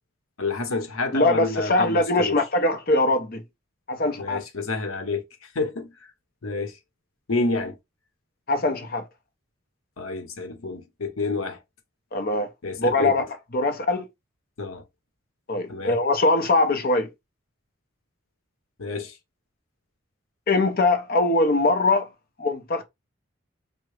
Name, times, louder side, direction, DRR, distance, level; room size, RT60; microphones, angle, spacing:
voice 1, 0.4-2.4 4.2-5.2 5.5-5.9 6.4-6.7 7.3-7.8 10.0-11.6 12.6-13.3 14.6-14.8 15.7-16.0 18.8-19.2, left 3 dB, 90° left, 0.9 m, -29 dB
voice 2, 1.1-3.4 3.9-4.4 8.5-9.0 12.1-12.5 12.8-13.2 13.5-14.1 15.5-17.1 20.5-22.1 22.4-22.8, left 2 dB, 45° left, 0.6 m, -22 dB
3.5 x 2.1 x 3.1 m
head